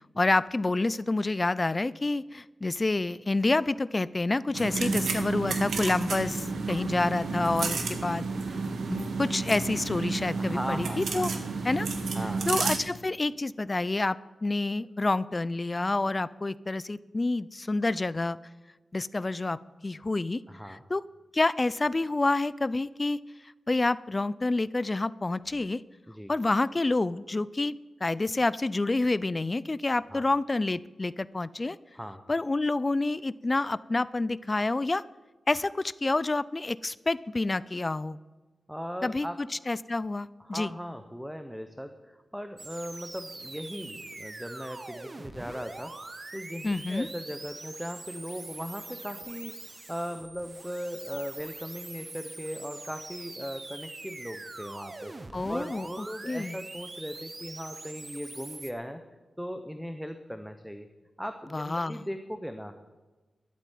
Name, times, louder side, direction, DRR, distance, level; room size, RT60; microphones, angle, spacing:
voice 1, 0.2-8.3 8.9-11.3 11.6-11.9 12.5-18.4 18.9-21.0 21.3-23.2 23.7-25.8 26.3-31.8 32.3-35.0 35.5-38.2 39.0-40.7 46.6-47.1 55.3-55.9 56.3-56.6 61.5-62.0, left 2 dB, 25° left, 19 dB, 0.3 m, -28 dB
sound 1, 4.5-12.8, right 4 dB, 90° right, 1.7 m, -31 dB
voice 2, 8.8-9.2 10.4-11.5 12.1-12.5 20.5-20.8 26.1-26.3 30.1-30.2 31.9-32.2 38.7-39.4 40.4-46.0 46.3-55.1 55.5-59.0 59.4-60.9 61.2-62.8, equal, ahead, 8 dB, 0.7 m, -38 dB
sound 2, 42.6-58.7, right 2 dB, 30° right, 1.0 m, -43 dB
12.5 x 8.5 x 9.2 m, 1.2 s
wide cardioid pair, 140°, 0 cm